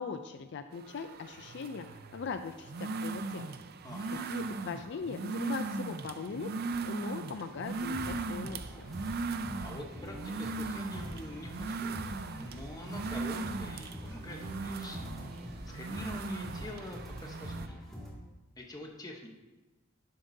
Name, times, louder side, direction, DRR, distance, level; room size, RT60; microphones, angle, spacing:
voice 1, 0.0-3.5 4.3-8.6, left 5 dB, 60° left, 9 dB, 0.4 m, -40 dB
sound 1, 0.7-17.7, right 3 dB, 50° right, 0.4 m, -39 dB
voice 2, 3.8-4.3 9.6-15.1 15.7-17.8 18.6-19.3, left 1 dB, 20° left, 2 dB, 1.0 m, -45 dB
sound 2, 7.6-18.1, equal, ahead, 2.0 m, -45 dB
12.0 x 7.4 x 2.7 m, 1.1 s
head